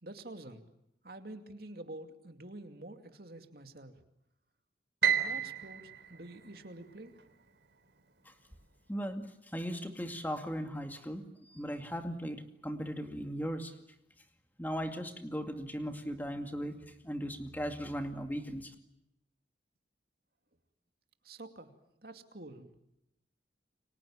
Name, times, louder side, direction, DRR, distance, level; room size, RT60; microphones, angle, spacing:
voice 1, 0.0-0.6 1.0-3.9 5.2-7.1 21.2-21.7 22.0-22.7, right 2 dB, 55° right, 6 dB, 2.6 m, -48 dB
Piano, 5.0-7.3, right 9 dB, 80° right, 3.8 m, -32 dB
voice 2, 8.9-9.2 9.5-11.2 11.5-13.7 14.6-16.8 17.0-18.7, equal, 10° left, 6 dB, 2.3 m, -37 dB
30.0 x 24.5 x 7.4 m, 0.85 s
head